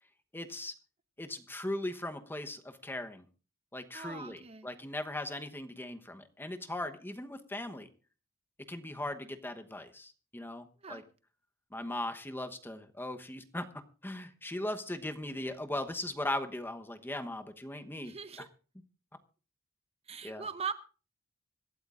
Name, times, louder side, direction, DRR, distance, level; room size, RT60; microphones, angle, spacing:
voice 1, 0.3-0.7 1.2-3.2 3.7-7.9 8.7-11.0 11.7-13.7 14.0-18.1 20.2-20.5, left 1 dB, 10° left, 7 dB, 1.0 m, -38 dB
voice 2, 3.9-4.7 10.8-11.0 18.0-18.5 20.1-20.7, right 6 dB, 30° right, 11 dB, 0.7 m, -40 dB
25.0 x 12.5 x 2.5 m, 0.36 s
head